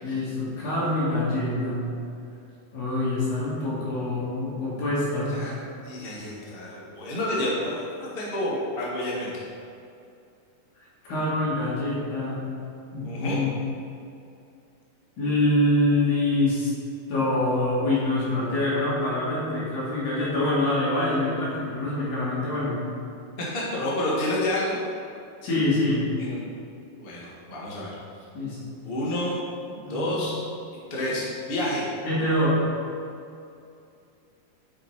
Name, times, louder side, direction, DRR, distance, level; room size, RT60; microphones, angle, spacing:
voice 1, 0.0-1.9 2.7-5.5 11.1-12.4 12.9-13.6 15.2-16.7 17.1-22.8 25.4-26.1 28.3-28.6 29.9-30.3 32.0-32.6, left 1 dB, 85° left, -8 dB, 4.0 m, -25 dB
voice 2, 5.8-9.3 13.0-13.4 23.4-24.8 26.2-26.4 27.0-27.9 28.8-29.4 29.9-30.4 30.9-31.9, left 1 dB, 65° left, -6 dB, 0.5 m, -29 dB
8.7 x 5.2 x 4.5 m, 2.5 s
omnidirectional pair, 3.9 m